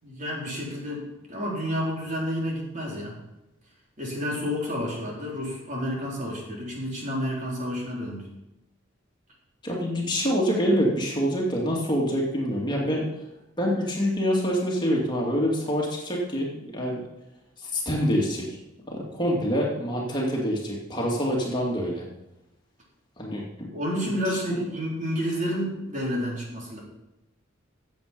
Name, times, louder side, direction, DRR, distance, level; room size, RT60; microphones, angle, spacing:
voice 1, 0.0-3.2 4.0-8.3 23.7-26.8, equal, 40° right, -3 dB, 4.3 m, -30 dB
voice 2, 9.6-13.1 13.6-17.0 17.6-18.5 18.9-22.0 23.2-23.4 24.3-24.6, equal, 25° left, -3 dB, 2.6 m, -26 dB
15.5 x 8.2 x 5.4 m, 0.94 s
head